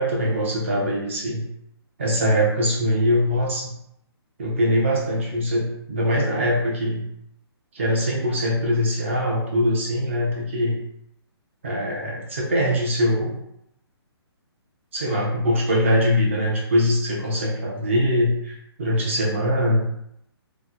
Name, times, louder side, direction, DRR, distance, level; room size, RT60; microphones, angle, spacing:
voice 1, 0.0-1.5 2.0-3.7 4.4-7.0 7.7-10.8 11.6-13.4 14.9-19.9, equal, 30° right, -3 dB, 0.6 m, -22 dB
2.9 x 2.1 x 3.6 m, 0.75 s
hypercardioid pair, 175°, 14 cm